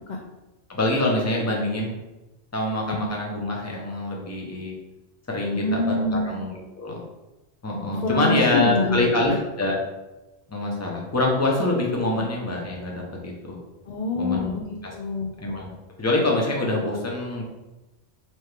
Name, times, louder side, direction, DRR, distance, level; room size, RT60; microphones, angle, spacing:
voice 1, 0.7-1.9 2.5-4.8 5.3-7.0 7.6-9.7 10.5-13.6 14.2-14.6 14.8-14.9 15.4-15.7 16.0-17.4, left 2 dB, 15° left, -2 dB, 0.7 m, -25 dB
voice 2, 5.5-6.3 7.9-9.4 12.1-12.3 13.9-15.3, left 2 dB, 55° left, 1 dB, 0.5 m, -26 dB
4.3 x 3.2 x 3.3 m, 1.1 s
omnidirectional pair, 1.2 m